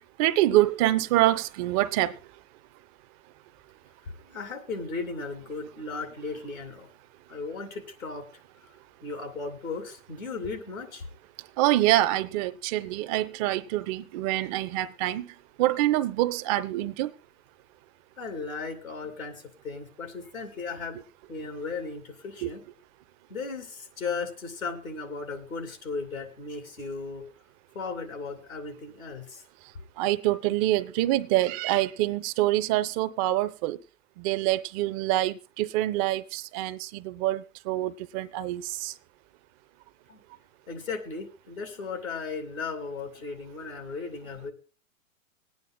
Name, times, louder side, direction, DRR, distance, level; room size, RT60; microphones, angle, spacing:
voice 1, 0.2-2.1 11.6-15.2 15.6-17.1 22.4-22.5 30.0-33.8 34.2-38.9, right 15 dB, 30° right, 0.5 m, -25 dB
voice 2, 4.2-6.9 7.3-8.2 9.0-11.0 18.2-21.0 21.3-22.6 23.3-27.2 27.7-29.4 40.1-40.2 40.7-44.5, left 4 dB, 90° left, 2.7 m, -36 dB
25.5 x 9.4 x 2.2 m
hypercardioid pair, 115°, 40 cm